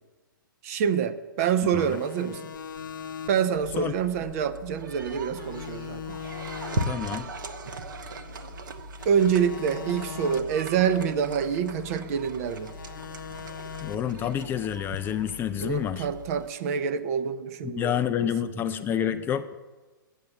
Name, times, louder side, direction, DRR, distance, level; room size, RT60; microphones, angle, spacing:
voice 1, 0.6-2.5 3.3-6.0 9.0-12.7 15.6-19.2, right 7 dB, 45° right, 12 dB, 0.7 m, -27 dB
sound 1, 1.8-5.1 5.4-8.6 9.0-12.2 12.5-15.7, left 8 dB, 65° left, 0.7 m, -42 dB
sound 2, 3.5-16.5, right 2 dB, 65° right, 0.9 m, -38 dB
voice 2, 6.9-7.3 13.8-16.1 17.6-19.5, left 10 dB, 20° left, 10 dB, 0.3 m, -28 dB
8.6 x 7.3 x 6.9 m, 1.3 s
figure-of-eight pair, 110°, 11 cm